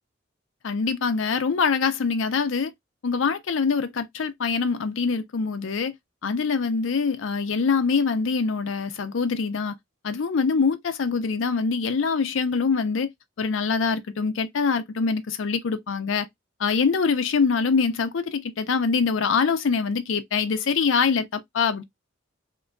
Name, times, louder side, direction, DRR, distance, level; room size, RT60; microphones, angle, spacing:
voice 1, 0.6-2.7 3.0-5.9 6.2-9.7 10.0-13.1 13.4-16.3 16.6-21.8, left 5 dB, 80° left, 0.5 m, -24 dB
3.6 x 3.0 x 2.2 m
head